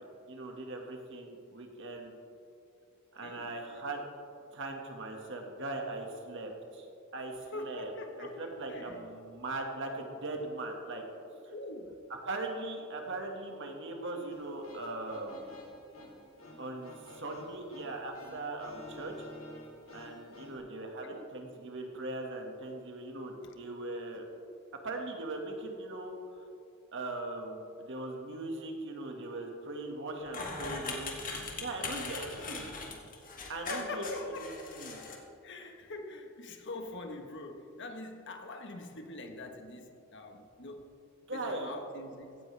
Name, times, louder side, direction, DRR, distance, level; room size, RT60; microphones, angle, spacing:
voice 1, 0.0-2.1 3.1-4.1 4.5-6.9 7.1-7.9 8.2-11.5 12.2-15.6 16.6-19.3 19.9-24.3 24.8-26.4 26.9-31.2 31.5-32.7 33.5-34.1 34.4-34.5 34.7-35.0 41.3-41.8, right 2 dB, 60° right, 2 dB, 1.9 m, -40 dB
voice 2, 3.2-3.5 7.5-9.1 11.5-12.0 21.0-21.3 23.4-23.5 32.0-32.2 33.4-34.6 35.4-40.9 41.3-42.4, left 2 dB, 60° left, 5 dB, 1.4 m, -44 dB
sound 1, 14.3-20.5, left 1 dB, 85° left, 2.6 m, -51 dB
sound 2, 30.3-35.2, left 4 dB, 40° left, 2.0 m, -40 dB
16.5 x 14.5 x 3.4 m, 2.5 s
head